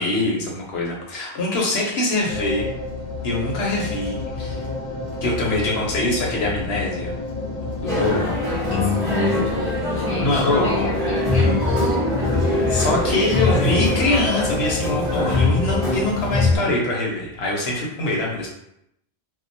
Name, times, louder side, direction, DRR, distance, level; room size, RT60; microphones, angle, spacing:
voice 1, 0.0-2.7 3.2-4.6 5.2-7.1 7.8-8.3 10.2-10.9 12.7-18.5, left 2 dB, 75° left, -3 dB, 0.9 m, -23 dB
sound 1, 2.3-16.5, left 2 dB, 50° left, 0.6 m, -29 dB
sound 2, 7.9-16.6, left 2 dB, 5° left, 0.7 m, -22 dB
voice 2, 8.7-13.4, equal, 40° right, -7 dB, 0.3 m, -30 dB
2.3 x 2.1 x 2.6 m, 0.77 s
omnidirectional pair, 1.1 m